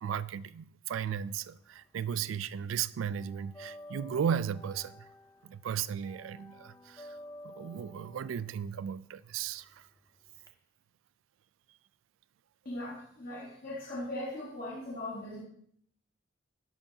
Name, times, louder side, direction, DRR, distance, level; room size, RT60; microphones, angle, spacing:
voice 1, 0.0-5.1 5.4-7.2 7.4-9.9, right 8 dB, 80° right, 0.3 m, -35 dB
sound 1, 1.2-2.3 2.6-10.5, left 1 dB, 15° left, 0.5 m, -52 dB
voice 2, 12.6-15.4, left 1 dB, 45° left, 1.4 m, -39 dB
10.5 x 6.9 x 2.7 m
head